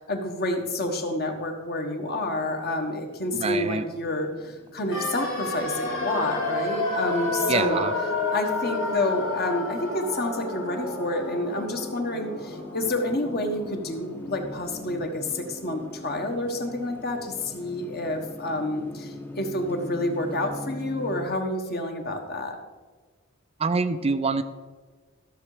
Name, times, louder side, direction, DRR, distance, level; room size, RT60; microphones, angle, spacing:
voice 1, 0.0-7.8 8.3-22.6, left 1 dB, 45° left, 4 dB, 1.4 m, -29 dB
sound 1, 2.3-21.3, left 1 dB, 10° left, 0.7 m, -43 dB
voice 2, 3.3-3.8 7.5-7.9 23.6-24.4, right 4 dB, 30° right, 10 dB, 0.4 m, -25 dB
sound 2, 4.9-14.8 15.1-15.2, left 2 dB, 70° left, 2.5 m, -31 dB
14.0 x 6.7 x 5.0 m, 1.4 s
head